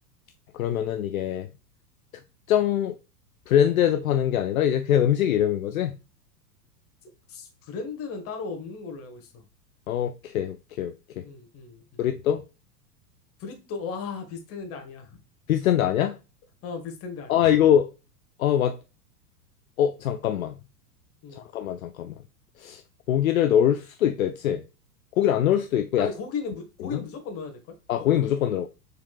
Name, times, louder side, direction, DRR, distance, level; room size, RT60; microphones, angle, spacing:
voice 1, 0.5-1.5 2.5-3.0 3.5-6.0 9.9-11.2 12.0-12.4 15.5-16.2 17.3-17.9 18.4-18.8 19.8-20.6 21.3-22.1 22.6-22.8 23.1-24.6 25.2-26.1 27.9-28.7, left 10 dB, 60° left, 0.5 m, -23 dB
voice 2, 7.3-9.4 11.2-12.0 13.4-15.1 16.6-17.5 21.2-21.5 26.0-27.7, left 5 dB, 30° left, 1.3 m, -36 dB
6.6 x 3.5 x 2.3 m
figure-of-eight pair, 95°, 48 cm